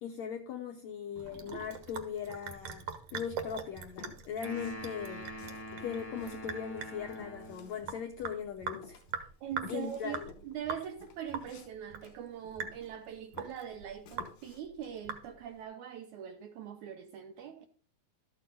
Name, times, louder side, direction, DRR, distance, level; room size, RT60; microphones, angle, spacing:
voice 1, 0.0-5.2 5.8-9.0 9.7-10.3, left 8 dB, 80° left, 1.6 m, -39 dB
Sink (filling or washing) / Drip, 1.2-15.6, right 6 dB, 60° right, 1.7 m, -43 dB
Walk footsteps, 3.9-4.8 5.2-8.3 8.7-13.0 13.3-14.6, left 6 dB, 60° left, 2.4 m, -53 dB
sound 1, 4.4-7.8, equal, 5° left, 0.9 m, -44 dB
voice 2, 9.4-17.7, right 9 dB, 80° right, 1.7 m, -42 dB
13.0 x 6.7 x 3.8 m
omnidirectional pair, 4.1 m